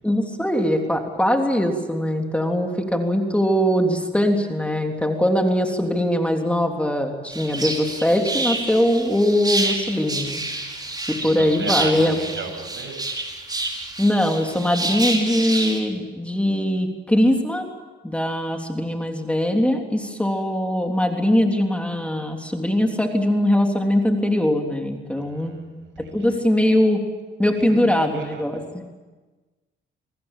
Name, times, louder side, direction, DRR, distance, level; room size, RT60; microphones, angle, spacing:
voice 1, 0.0-10.4 11.1-12.2 14.0-17.6 18.0-25.6 26.1-27.0 27.4-28.8, left 1 dB, 5° left, 3 dB, 3.3 m, -21 dB
sound 1, 7.3-15.8, right 2 dB, 20° right, 5.5 m, -28 dB
voice 2, 11.2-13.0 25.2-26.4 27.8-28.6, right 5 dB, 70° right, 5 dB, 7.4 m, -36 dB
26.5 x 20.5 x 9.0 m, 1.3 s
cardioid pair, 90°, 20 cm